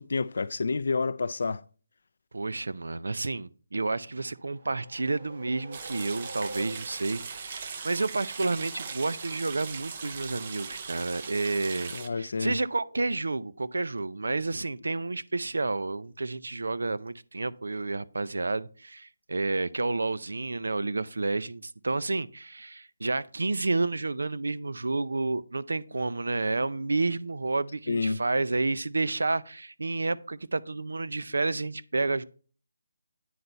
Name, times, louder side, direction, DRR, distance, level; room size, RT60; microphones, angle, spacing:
voice 1, 0.0-1.6 11.9-12.6 27.9-28.2, left 4 dB, 60° left, 0.3 m, -29 dB
voice 2, 2.3-32.2, right 3 dB, 90° right, 0.4 m, -30 dB
sound 1, 4.1-7.2, right 2 dB, 50° right, 1.3 m, -45 dB
sound 2, 5.7-12.1, right 5 dB, 35° right, 0.6 m, -39 dB
9.4 x 4.0 x 4.4 m
hypercardioid pair, 170°, 0 cm